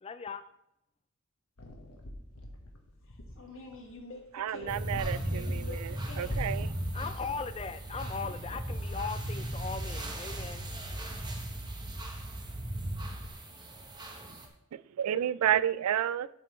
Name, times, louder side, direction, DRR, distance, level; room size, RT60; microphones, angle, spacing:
voice 1, 0.0-0.4 6.9-10.7, left 5 dB, 25° left, 12 dB, 0.3 m, -38 dB
sound 1, 1.6-13.3, left 1 dB, 85° left, 1.3 m, -47 dB
voice 2, 3.0-6.3, left 3 dB, 60° left, 0 dB, 1.7 m, -47 dB
voice 3, 4.3-6.7 14.7-16.3, right 10 dB, 85° right, 18 dB, 0.3 m, -31 dB
sound 2, 4.7-14.5, right 1 dB, 20° right, 0.9 m, -37 dB
12.0 x 5.3 x 3.1 m, 0.82 s
head